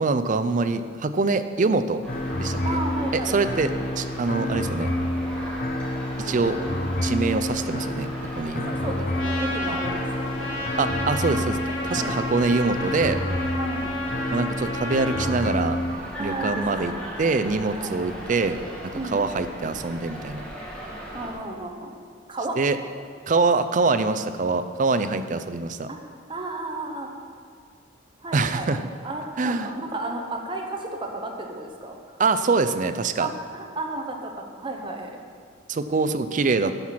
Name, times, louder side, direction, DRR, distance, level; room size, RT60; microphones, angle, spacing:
voice 1, 0.0-2.0 2.4-2.6 3.1-4.9 6.2-6.6 7.0-8.7 9.7-9.8 10.8-11.6 11.8-13.2 14.3-15.8 16.2-16.9 17.2-20.4 22.6-22.8 23.3-25.9 28.3-28.8 29.4-29.7 32.2-33.3 35.7-36.7, right 3 dB, 40° right, 10 dB, 0.4 m, -24 dB
sound 1, 2.0-21.3, equal, 5° left, 1.5 m, -38 dB
sound 2, 2.1-16.0, left 1 dB, 45° left, 0.6 m, -29 dB
voice 2, 2.6-3.6 6.2-6.6 8.6-10.5 11.9-12.2 13.6-14.0 16.2-17.0 17.7-18.2 18.9-19.2 21.1-22.0 22.3-22.6 25.9-26.0 26.3-27.1 28.2-28.7 29.0-32.2 33.2-35.2 36.6-36.7, right 2 dB, 25° right, 2 dB, 0.9 m, -33 dB
Trumpet, 9.1-15.4, left 1 dB, 75° left, 1.5 m, -32 dB
10.5 x 5.8 x 5.9 m, 2.2 s
head